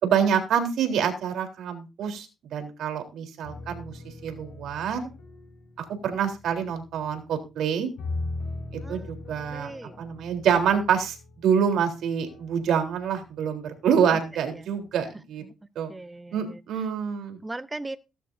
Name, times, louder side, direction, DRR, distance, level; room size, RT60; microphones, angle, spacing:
voice 1, 0.0-5.1 5.8-7.9 8.7-9.7 10.0-11.2 11.4-15.4 15.8-15.9 16.3-17.4, right 7 dB, 75° right, 5 dB, 3.6 m, -26 dB
sound 1, 3.4-7.5 8.0-13.5 13.9-14.4, left 2 dB, 75° left, 5.4 m, -40 dB
voice 2, 9.5-10.0 14.5-14.6 15.9-16.6 17.4-18.0, right 2 dB, 15° right, 11 dB, 0.9 m, -38 dB
18.5 x 11.5 x 2.7 m, 0.28 s
cardioid pair, 90°, 0 cm